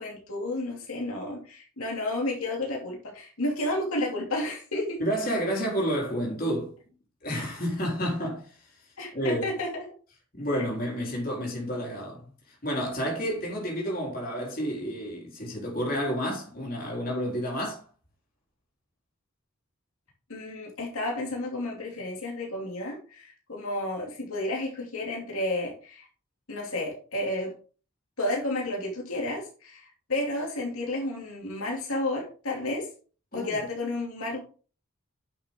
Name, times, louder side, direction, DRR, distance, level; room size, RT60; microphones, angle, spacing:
voice 1, 0.0-5.0 9.0-9.9 20.3-26.1 26.5-27.5 28.2-32.9 33.3-34.4, left 1 dB, 85° left, 2.7 m, -31 dB
voice 2, 5.0-6.7 7.2-8.6 9.1-9.6 10.3-17.8 33.3-33.6, equal, 40° left, 3.7 m, -30 dB
10.0 x 6.4 x 3.7 m
head